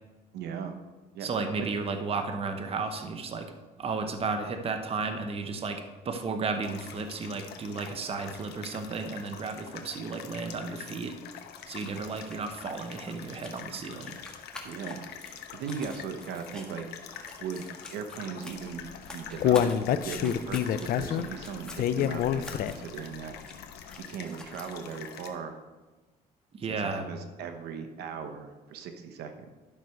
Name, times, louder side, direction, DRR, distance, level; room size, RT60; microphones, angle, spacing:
voice 1, 0.3-0.8 1.1-1.3 1.6-1.7 14.6-15.2 15.5-16.9 17.4-17.6 17.9-18.9 19.1-23.3 24.0-25.6 26.6-29.5, right 6 dB, 75° right, 6 dB, 1.0 m, -38 dB
voice 2, 1.2-11.1 11.7-14.2 26.5-27.1, right 4 dB, 35° right, 6 dB, 0.9 m, -33 dB
sound 1, 6.6-25.3, left 8 dB, 75° left, 1.1 m, -46 dB
sound 2, 11.6-24.8, left 1 dB, 5° left, 1.5 m, -49 dB
Human voice, 18.8-23.0 23.4-23.5 23.9-24.0, left 10 dB, 60° left, 0.5 m, -26 dB
11.5 x 6.2 x 4.6 m, 1.2 s
cardioid pair, 110°, 17 cm